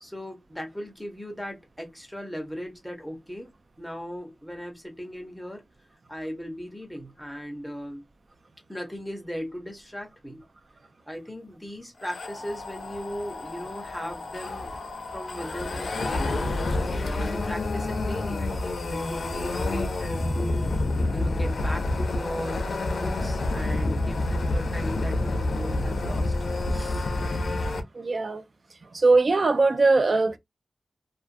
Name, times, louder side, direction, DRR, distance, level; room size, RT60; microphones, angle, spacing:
voice 1, 0.0-3.5 3.8-5.6 6.1-8.0 8.7-10.4 11.0-14.7 15.1-16.6 17.0-20.7 21.1-22.7 22.9-26.3 26.7-27.1, equal, 5° left, 0.9 m, -37 dB
sound 1, 12.0-27.8, left 2 dB, 85° left, 0.5 m, -28 dB
voice 2, 27.9-28.4 28.9-30.4, right 3 dB, 50° right, 0.4 m, -21 dB
2.5 x 2.3 x 2.5 m
wide cardioid pair, 120°, 0 cm